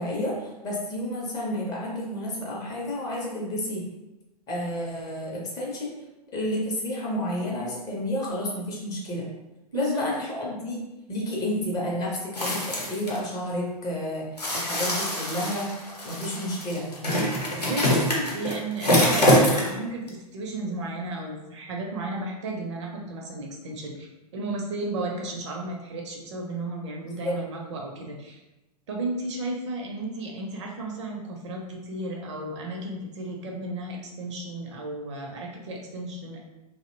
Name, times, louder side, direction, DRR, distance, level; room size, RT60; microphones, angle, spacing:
voice 1, 0.0-3.8 4.5-5.9 6.3-9.3 9.7-14.3 14.5-15.7 16.0-17.3 27.1-27.4, left 1 dB, 20° left, -4 dB, 0.5 m, -30 dB
voice 2, 9.7-10.1 17.6-20.0 20.3-28.4 28.9-36.4, right 2 dB, 45° right, 0 dB, 0.5 m, -33 dB
sound 1, 12.3-13.2 14.4-19.8 20.1-20.2, equal, 80° left, 0.7 m, -24 dB
2.6 x 2.0 x 2.6 m, 0.99 s
figure-of-eight pair, 105°, 20 cm